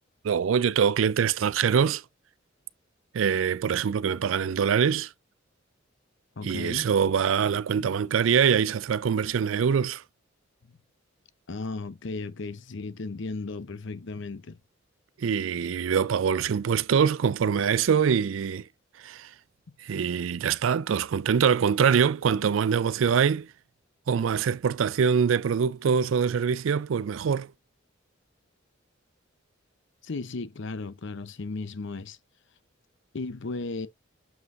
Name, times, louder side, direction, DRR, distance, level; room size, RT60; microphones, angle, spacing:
voice 1, 0.2-2.0 3.1-5.1 6.4-10.0 15.2-18.7 19.0-19.3 19.8-23.5 24.1-27.5, right 7 dB, 75° right, 0.4 m, -24 dB
voice 2, 6.4-6.9 7.8-7.9 11.5-14.6 30.0-32.2 33.1-33.9, left 3 dB, 65° left, 0.7 m, -35 dB
7.3 x 6.1 x 2.5 m
head